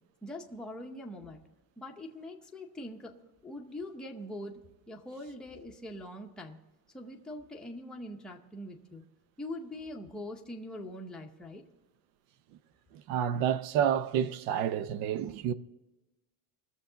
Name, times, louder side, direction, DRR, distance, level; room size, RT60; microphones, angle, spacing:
voice 1, 0.2-1.4 1.8-3.1 3.4-4.6 4.9-6.6 6.9-9.0 9.4-11.6, left 1 dB, ahead, 0.7 m, -42 dB
voice 2, 12.9-15.5, right 9 dB, 70° right, 0.8 m, -29 dB
20.0 x 7.1 x 3.8 m
cardioid pair, 175°, 45 cm